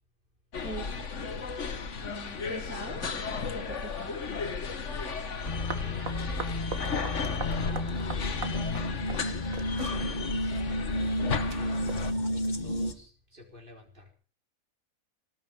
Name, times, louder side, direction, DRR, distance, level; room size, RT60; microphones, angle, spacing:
sound 1, 0.5-12.1, left 5 dB, 55° left, 1.7 m, -34 dB
voice 1, 0.6-1.0 2.0-4.2, right 2 dB, 10° right, -3 dB, 3.4 m, -42 dB
sound 2, 5.4-12.0, right 4 dB, 70° right, 2.1 m, -43 dB
sound 3, 5.5-12.9, left 1 dB, 35° left, 1.6 m, -32 dB
voice 2, 5.7-6.5 7.6-14.1, left 1 dB, 35° right, 2 dB, 4.4 m, -50 dB
19.0 x 6.9 x 9.4 m, 0.39 s
omnidirectional pair, 1.5 m